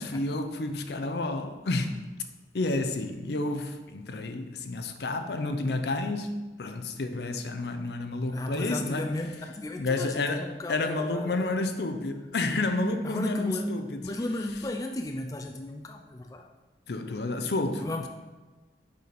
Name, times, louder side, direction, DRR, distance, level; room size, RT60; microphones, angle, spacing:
voice 1, 0.0-2.0 2.5-9.0 9.8-14.0 16.9-17.9, left 2 dB, 70° left, 0.6 m, -30 dB
voice 2, 8.3-11.5 13.0-13.8 14.0-16.5 17.8-18.1, left 1 dB, 20° left, 0.3 m, -35 dB
6.7 x 5.0 x 4.0 m
head